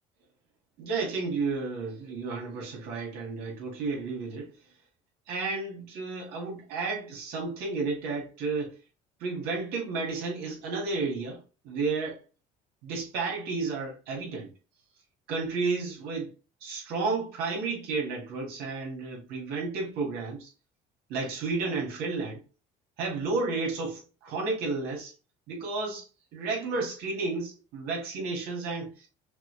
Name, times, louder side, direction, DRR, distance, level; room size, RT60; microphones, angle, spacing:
voice 1, 0.8-4.5 5.3-8.7 9.2-11.4 11.6-12.2 12.8-14.5 15.3-16.3 16.6-20.5 21.1-22.4 23.0-25.1 25.5-26.1 26.3-29.1, right 4 dB, 80° right, 2.2 m, -32 dB
5.9 x 2.5 x 3.3 m
cardioid pair, 120°, 16 cm